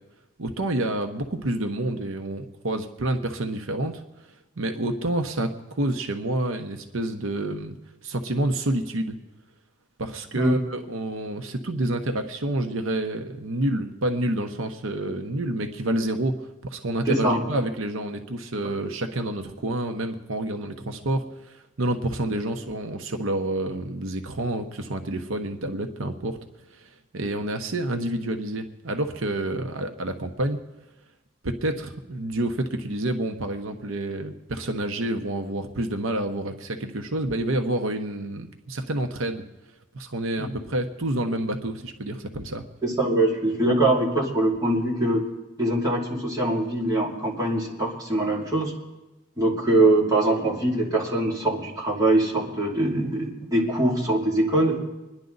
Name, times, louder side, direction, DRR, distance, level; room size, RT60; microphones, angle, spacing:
voice 1, 0.4-4.0 4.6-7.8 8.0-9.2 10.0-26.4 26.7-30.6 31.4-39.4 39.9-42.7, right 1 dB, 80° right, 5 dB, 0.9 m, -28 dB
voice 2, 17.1-17.4 42.8-45.2 45.6-48.7 49.4-54.8, right 1 dB, 20° right, -5 dB, 2.8 m, -23 dB
25.5 x 10.5 x 4.0 m, 1.1 s
head